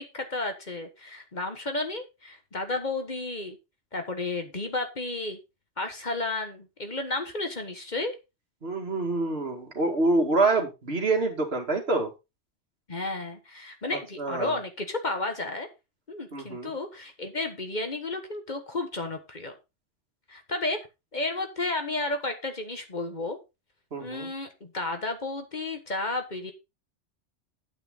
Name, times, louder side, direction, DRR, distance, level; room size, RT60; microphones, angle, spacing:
voice 1, 0.0-3.6 3.9-5.4 5.8-8.1 12.9-15.7 16.1-19.5 20.3-20.9 21.1-23.4 24.0-26.5, left 2 dB, 40° left, 6 dB, 1.5 m, -32 dB
voice 2, 8.6-12.1 14.2-14.5 16.3-16.7 23.9-24.3, right 2 dB, 60° right, 3 dB, 2.4 m, -26 dB
9.1 x 9.0 x 3.7 m, 0.25 s
omnidirectional pair, 1.2 m